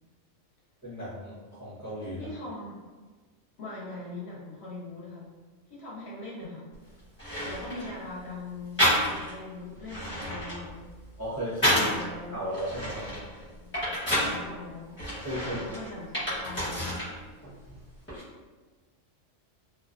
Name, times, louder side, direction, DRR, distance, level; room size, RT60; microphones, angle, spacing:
voice 1, 0.8-2.3 11.2-11.9 12.3-13.1 15.2-15.6, equal, 20° right, -10 dB, 0.5 m, -35 dB
voice 2, 2.2-2.8 3.6-5.3 5.7-6.7 7.4-10.9 11.7-12.5 13.6-13.8 14.1-15.0 15.4-16.9, left 2 dB, 65° left, -5 dB, 0.8 m, -41 dB
sound 1, 6.7-6.8 7.2-7.9 8.8-9.4 9.8-12.1 12.5-14.4 15.0-17.1 17.4-18.2, equal, 10° left, 0.9 m, -29 dB
2.4 x 2.1 x 2.4 m, 1.3 s
omnidirectional pair, 1.3 m